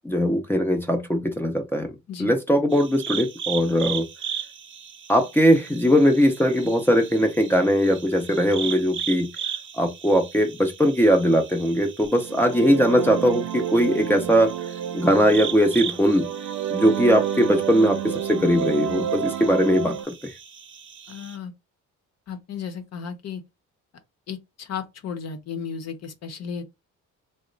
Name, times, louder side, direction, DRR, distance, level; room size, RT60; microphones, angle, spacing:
voice 1, 0.0-1.9 2.2-4.1 5.1-9.3 9.7-14.5 14.9-16.3 16.7-20.3, equal, 5° left, 0.5 m, -20 dB
sound 1, 2.7-21.4, right 8 dB, 40° right, 0.6 m, -37 dB
sound 2, 12.2-20.0, right 9 dB, 80° right, 0.6 m, -30 dB
voice 2, 21.1-21.5 22.3-23.4 24.3-26.6, left 6 dB, 60° left, 0.8 m, -34 dB
3.0 x 2.1 x 3.7 m
cardioid pair, 90°, 30 cm